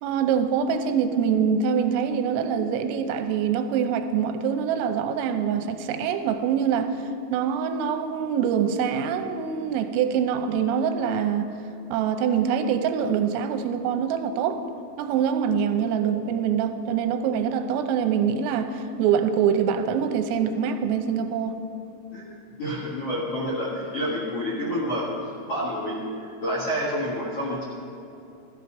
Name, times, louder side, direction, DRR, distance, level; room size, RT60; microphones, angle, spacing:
voice 1, 0.0-11.5 11.9-14.6 15.0-21.6, right 7 dB, 90° right, 7 dB, 3.3 m, -24 dB
voice 2, 22.6-25.1 25.5-27.6, equal, 60° left, -4 dB, 1.5 m, -28 dB
15.5 x 13.5 x 5.1 m, 2.8 s
omnidirectional pair, 6.0 m